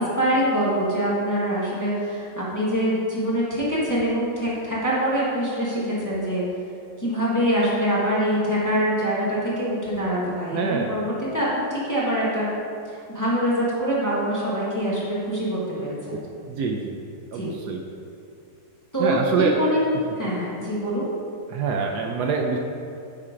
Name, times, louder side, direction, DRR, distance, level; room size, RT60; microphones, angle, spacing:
voice 1, 0.0-6.4 7.0-12.5 12.9-16.2 17.3-17.5 18.9-19.8 20.2-21.1, equal, 10° left, -8 dB, 1.3 m, -24 dB
voice 2, 10.5-11.0 16.1-16.2 16.5-17.0 17.3-17.8 19.0-19.6 21.5-22.6, right 5 dB, 70° right, 2 dB, 1.1 m, -25 dB
8.5 x 4.4 x 5.1 m, 2.5 s
omnidirectional pair, 1.9 m